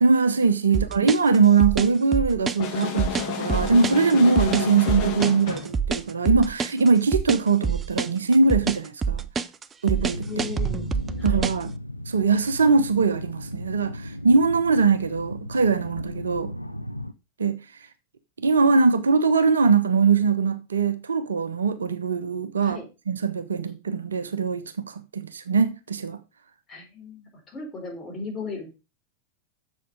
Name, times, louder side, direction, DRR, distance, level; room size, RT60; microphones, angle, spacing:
voice 1, 0.0-9.2 9.8-10.4 11.2-11.7 12.1-16.5 17.4-17.6 18.4-26.2, right 4 dB, 70° right, 0.8 m, -21 dB
voice 2, 0.7-1.1 10.3-10.9 11.2-11.5 22.6-22.8 26.7-28.8, left 3 dB, 20° left, 4.1 m, -37 dB
sound 1, 0.7-11.7, right 5 dB, 20° right, 0.5 m, -27 dB
sound 2, 2.6-5.8, left 6 dB, 40° left, 2.0 m, -30 dB
sound 3, 9.9-17.1, left 1 dB, 90° left, 0.5 m, -36 dB
7.2 x 6.9 x 4.8 m
figure-of-eight pair, 90°, 0 cm